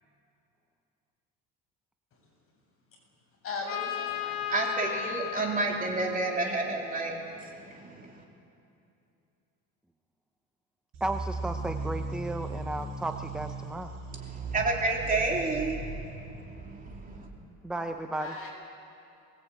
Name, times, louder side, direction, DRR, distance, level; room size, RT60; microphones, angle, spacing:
voice 1, 3.4-4.3 18.2-18.5, left 3 dB, 40° left, -2 dB, 7.8 m, -37 dB
Trumpet, 3.7-7.4, left 10 dB, 70° left, 2.1 m, -36 dB
voice 2, 4.5-8.2 14.1-16.1 16.4-17.3, right 3 dB, 20° right, -1 dB, 3.2 m, -31 dB
sound 1, 10.9-17.5, right 3 dB, 60° right, 5.8 m, -38 dB
voice 3, 11.0-13.9 17.6-18.4, right 2 dB, ahead, 5 dB, 0.7 m, -34 dB
23.0 x 20.0 x 8.8 m, 2.7 s
cardioid pair, 150°, 36 cm